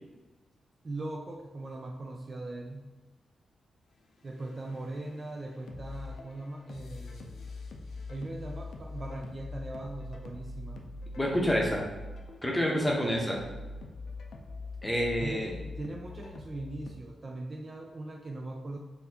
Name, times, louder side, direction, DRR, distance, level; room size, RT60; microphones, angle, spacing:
voice 1, 0.8-2.9 4.2-7.4 8.1-10.9 12.8-13.5 15.2-18.8, right 2 dB, 35° right, 2 dB, 0.3 m, -40 dB
sound 1, 4.2-17.0, left 3 dB, 80° left, 0.4 m, -43 dB
voice 2, 11.2-11.9 12.4-13.4 14.8-15.5, equal, 10° left, -2 dB, 0.8 m, -28 dB
4.1 x 2.7 x 2.7 m, 1.2 s
cardioid pair, 105°, 0 cm